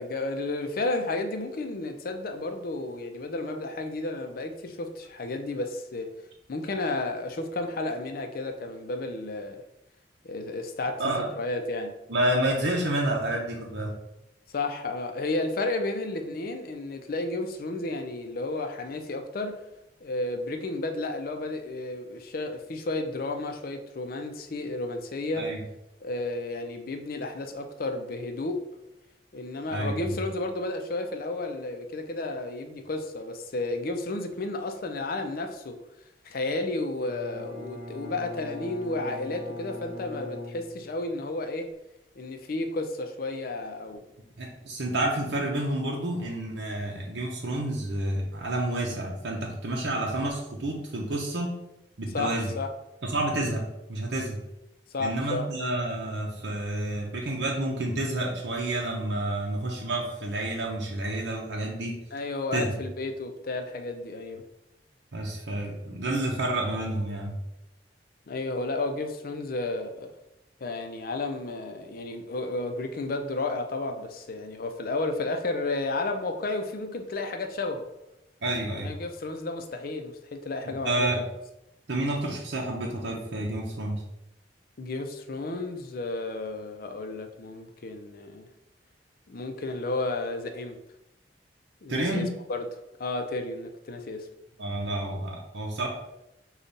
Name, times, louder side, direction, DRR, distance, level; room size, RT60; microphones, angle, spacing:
voice 1, 0.0-6.2 6.5-9.6 10.2-11.9 14.5-19.6 20.0-25.5 26.0-28.6 29.3-35.8 36.2-41.7 42.2-44.0 52.1-52.7 54.9-55.5 62.1-64.4 68.3-70.1 70.6-77.9 78.8-81.1 84.8-88.5 89.3-90.8 91.8-92.7 93.0-94.3, left 2 dB, 55° left, 5 dB, 0.5 m, -32 dB
voice 2, 12.1-13.9 25.4-25.6 29.7-30.1 44.4-51.5 52.0-52.5 53.0-53.6 53.9-54.4 55.0-61.9 62.5-62.7 65.1-67.3 78.4-78.9 80.8-81.2 81.9-84.0 91.9-92.3 94.6-95.9, right 1 dB, 75° right, -2 dB, 0.8 m, -29 dB
Bowed string instrument, 37.0-41.2, left 2 dB, 25° right, 1.6 m, -41 dB
5.2 x 2.4 x 4.0 m, 0.87 s
head